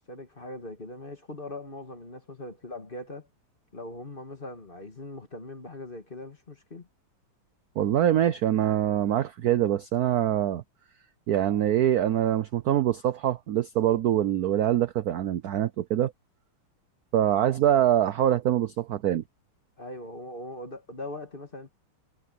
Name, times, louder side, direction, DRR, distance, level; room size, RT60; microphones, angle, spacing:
voice 1, 0.0-3.3 3.7-6.9 19.8-21.7, left 2 dB, 25° left, 2.2 m, -40 dB
voice 2, 7.8-10.6 11.3-16.1 17.1-19.2, right 11 dB, 70° right, 0.9 m, -24 dB
omnidirectional pair, 2.4 m